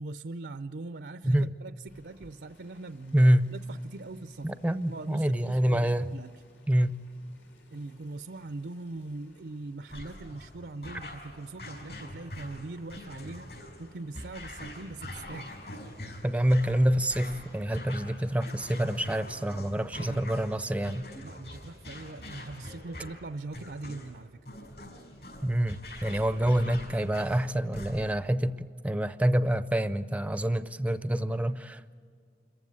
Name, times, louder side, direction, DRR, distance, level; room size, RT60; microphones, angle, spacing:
voice 1, 0.0-4.6 4.9-6.3 7.7-15.5 19.9-20.2 21.2-24.4, right 2 dB, 65° right, 12 dB, 0.5 m, -41 dB
sound 1, 1.9-19.4, left 1 dB, 90° left, 3.8 m, -59 dB
voice 2, 3.1-3.5 4.4-6.1 6.7-7.0 16.2-21.0 25.4-31.9, right 1 dB, 10° right, 13 dB, 0.5 m, -26 dB
sound 2, 9.9-28.3, left 1 dB, 60° left, 5.7 m, -44 dB
26.5 x 15.0 x 9.5 m, 2.3 s
head